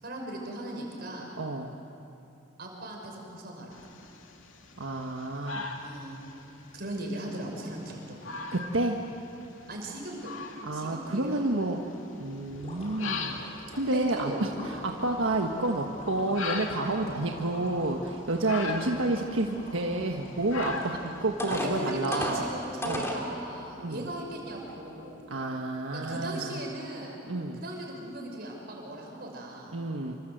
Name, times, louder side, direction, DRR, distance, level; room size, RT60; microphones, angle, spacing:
voice 1, 0.0-1.3 2.6-3.8 5.8-6.2 6.7-8.2 9.7-10.4 10.7-11.7 13.7-14.4 21.5-25.2 25.9-27.2 27.5-29.8, right 1 dB, 50° right, 0 dB, 6.0 m, -38 dB
voice 2, 1.4-1.7 4.8-5.7 8.5-9.0 10.6-11.8 12.2-13.4 13.7-22.4 22.8-23.0 23.8-24.1 25.3-26.6 27.3-27.6 29.7-30.1, right 2 dB, 85° right, 2 dB, 1.4 m, -30 dB
sound 1, 3.7-22.4, left 4 dB, 80° left, 2.5 m, -42 dB
sound 2, 12.5-21.3, left 1 dB, 35° left, 5.9 m, -46 dB
sound 3, 20.8-20.9 21.4-23.2 23.9-24.0 24.5-24.7, left 1 dB, 15° left, 2.9 m, -33 dB
27.0 x 25.5 x 8.0 m, 2.8 s
head